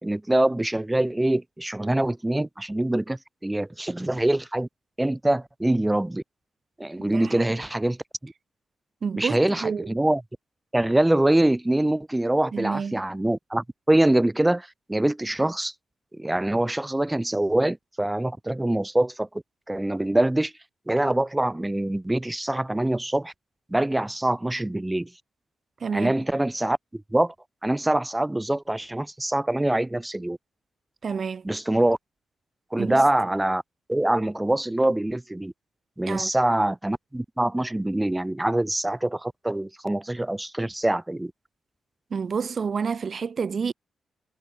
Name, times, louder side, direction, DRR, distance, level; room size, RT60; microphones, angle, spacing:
voice 1, 0.0-4.7 5.0-6.2 6.8-8.3 9.2-10.2 10.7-15.7 16.1-19.3 19.7-20.5 20.9-23.3 23.7-25.1 25.9-27.3 27.6-30.4 31.4-32.0 32.7-33.6 33.9-35.5 36.0-41.3, right 1 dB, 15° right, 2.2 m, -24 dB
voice 2, 7.0-7.5 9.0-9.9 12.5-13.0 25.8-26.1 31.0-31.5 32.8-33.1 36.1-36.3 42.1-43.7, right 6 dB, 55° right, 2.0 m, -29 dB
supercardioid pair, 45°, 0 cm